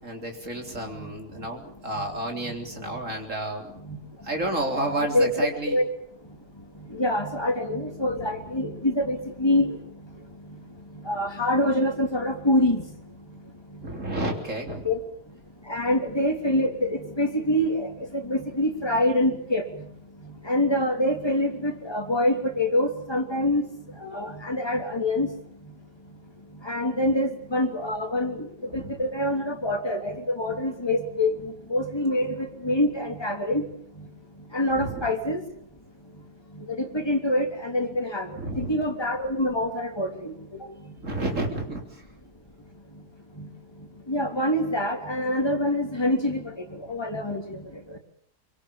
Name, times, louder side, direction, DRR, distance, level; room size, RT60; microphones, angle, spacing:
voice 1, 0.0-3.7 4.2-5.8 8.1-8.3 13.8-14.9 23.4-23.5 28.7-29.0 34.7-35.1 38.3-38.8 41.0-42.0, right 1 dB, 50° right, 3 dB, 4.3 m, -31 dB
voice 2, 6.9-9.8 11.0-12.8 14.8-15.0 15.7-19.6 20.2-23.7 24.0-25.3 26.6-33.7 34.5-35.4 36.7-40.3 43.4-43.5 44.1-47.6 47.9-48.0, left 1 dB, 15° left, 2 dB, 3.3 m, -25 dB
24.0 x 23.0 x 7.2 m, 0.63 s
omnidirectional pair, 1.7 m